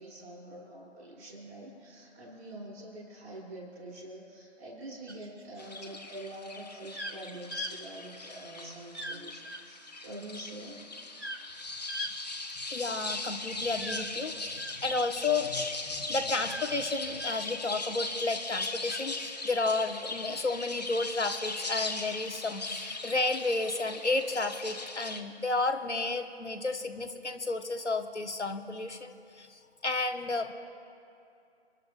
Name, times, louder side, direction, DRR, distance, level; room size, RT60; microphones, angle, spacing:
voice 1, 0.0-10.8, right 1 dB, 10° right, -8 dB, 1.8 m, -45 dB
sound 1, 5.1-5.6 6.9-7.2 7.5-7.7 8.9-9.2 9.4-9.6 11.2-11.5 11.9-12.1 13.8-14.8 16.4-16.8 17.2-17.4 18.8-19.0, left 1 dB, 80° right, 3.2 m, -39 dB
sound 2, 5.6-25.2, left 3 dB, 35° left, 1.0 m, -39 dB
voice 2, 12.7-30.5, left 3 dB, 75° left, 6 dB, 1.4 m, -32 dB
29.5 x 12.0 x 2.5 m, 2.6 s
figure-of-eight pair, 160°, 35 cm